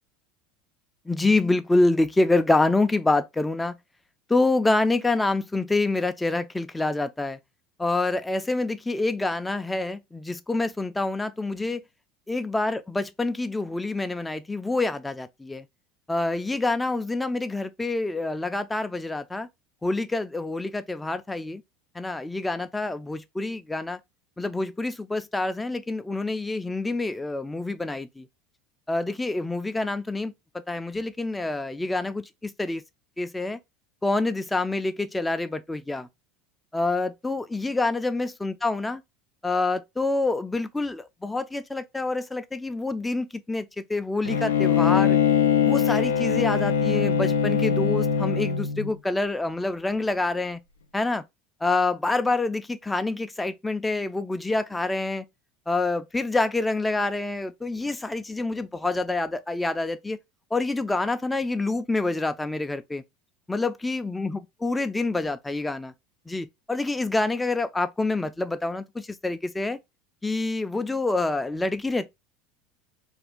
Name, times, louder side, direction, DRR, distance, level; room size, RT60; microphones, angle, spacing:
voice 1, 1.1-3.8 4.3-7.4 7.8-11.8 12.3-15.7 16.1-19.5 19.8-21.6 22.0-24.0 24.4-28.3 28.9-30.3 30.7-32.8 33.2-33.6 34.0-36.1 36.7-39.0 39.4-45.2 45.6-50.6 50.9-51.2 51.6-55.2 55.7-60.2 60.5-63.0 63.5-65.9 66.3-69.8 70.2-72.1, left 2 dB, 10° left, 0.4 m, -27 dB
Bowed string instrument, 44.3-48.9, left 7 dB, 90° left, 0.3 m, -22 dB
2.5 x 2.3 x 3.5 m
hypercardioid pair, 80°, 0 cm